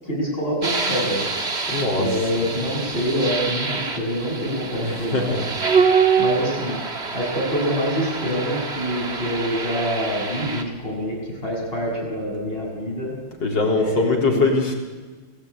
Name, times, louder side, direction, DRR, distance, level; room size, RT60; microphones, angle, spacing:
voice 1, 0.0-1.2 2.0-5.4 6.2-6.8 7.1-13.1 13.8-14.4, equal, 25° left, -2 dB, 8.2 m, -26 dB
sound 1, 0.6-10.6, right 5 dB, 35° right, 2.1 m, -25 dB
voice 2, 1.7-2.0 4.8-5.4 13.4-14.7, left 3 dB, 65° left, 1 dB, 4.6 m, -22 dB
28.5 x 17.5 x 9.9 m, 1.4 s
omnidirectional pair, 2.1 m